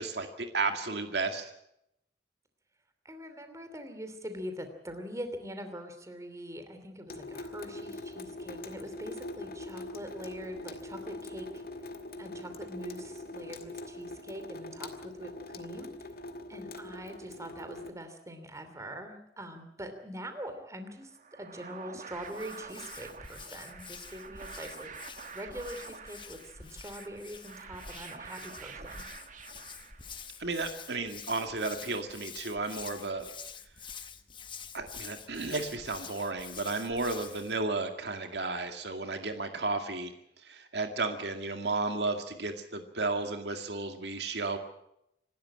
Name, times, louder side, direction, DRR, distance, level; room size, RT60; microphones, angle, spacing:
voice 1, 0.0-1.5 30.4-33.3 34.7-40.1 40.4-44.6, right 3 dB, 70° right, 6 dB, 2.1 m, -33 dB
voice 2, 3.0-11.6 12.2-15.9 16.5-25.0 25.3-29.0, equal, 20° right, 7 dB, 2.9 m, -43 dB
Water tap faucet / Sink (filling or washing) / Drip, 7.1-17.9, left 2 dB, 60° left, 1.9 m, -43 dB
sound 1, 21.1-30.5, right 5 dB, 45° right, 1.5 m, -48 dB
Hands, 22.2-37.6, left 6 dB, 30° left, 1.2 m, -47 dB
26.5 x 12.5 x 8.9 m, 0.80 s
head